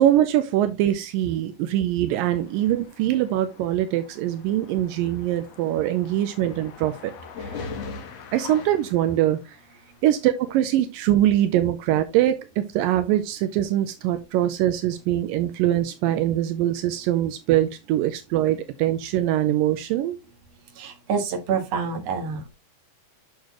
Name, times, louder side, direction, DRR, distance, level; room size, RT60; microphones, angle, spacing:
voice 1, 0.0-7.1 7.4-7.7 8.3-9.6 10.0-20.2, right 12 dB, 80° right, 2.4 m, -23 dB
sound 1, 2.1-9.7, left 5 dB, 60° left, 1.8 m, -41 dB
voice 2, 20.8-22.5, right 5 dB, 55° right, 2.5 m, -27 dB
8.4 x 6.6 x 3.0 m
omnidirectional pair, 4.0 m